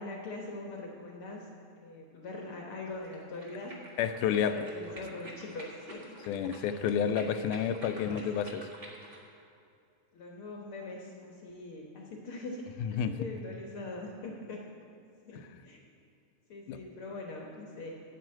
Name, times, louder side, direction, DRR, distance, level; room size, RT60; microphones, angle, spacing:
voice 1, 0.0-1.5 1.8-3.7 4.2-6.2 6.7-7.0 7.9-8.2 10.1-12.6 12.9-14.6 15.2-15.8 16.5-17.9, left 2 dB, 60° left, 0 dB, 1.5 m, -42 dB
sound 1, 3.0-9.2, right 1 dB, 35° right, 0.9 m, -49 dB
voice 2, 4.0-4.5 6.3-8.7 12.8-13.2 15.4-15.5 16.7-16.8, left 8 dB, 85° left, 9 dB, 2.0 m, -30 dB
9.4 x 7.5 x 8.7 m, 2.5 s
omnidirectional pair, 3.6 m